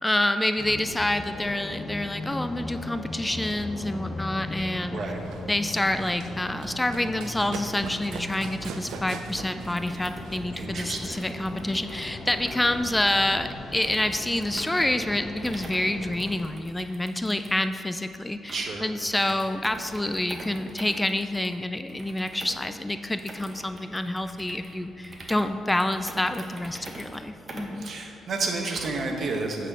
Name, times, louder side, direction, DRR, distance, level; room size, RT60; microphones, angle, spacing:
voice 1, 0.0-5.0 5.5-27.9, left 1 dB, 15° left, 9 dB, 0.4 m, -27 dB
sound 1, 0.6-16.5, left 2 dB, 40° left, 1.0 m, -38 dB
Run, 5.1-11.1, right 5 dB, 80° right, 0.6 m, -42 dB
sound 2, 9.6-29.2, right 1 dB, 40° right, 1.3 m, -46 dB
voice 2, 10.5-11.2 12.5-12.7 18.5-18.9 27.8-29.7, right 3 dB, 60° right, 2 dB, 1.2 m, -31 dB
8.7 x 4.2 x 6.7 m, 2.5 s
supercardioid pair, 60°, 0 cm